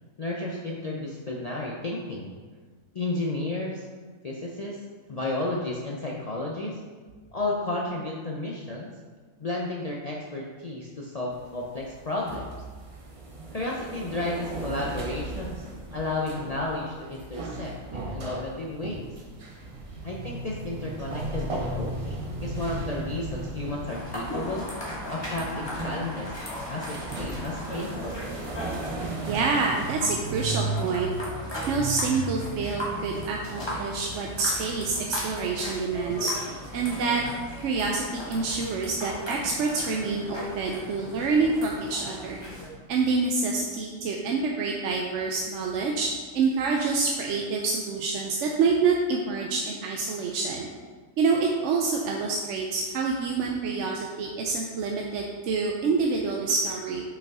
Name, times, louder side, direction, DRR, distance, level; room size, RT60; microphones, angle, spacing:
voice 1, 0.2-2.3 2.9-3.8 4.2-4.8 5.1-6.8 7.3-8.9 9.4-12.4 13.5-15.7 15.9-19.1 20.0-24.7 25.1-26.3 26.7-28.0, left 2 dB, 60° left, -3 dB, 0.4 m, -32 dB
sound 1, 11.3-30.0, right 2 dB, 40° right, 0.5 m, -37 dB
sound 2, 23.9-42.7, equal, 20° left, 1.3 m, -37 dB
voice 2, 29.2-37.2 37.6-42.4 42.9-46.1 46.3-50.7 51.2-57.0, right 4 dB, 65° right, 0 dB, 0.8 m, -27 dB
5.9 x 5.4 x 3.6 m, 1.5 s
omnidirectional pair, 1.5 m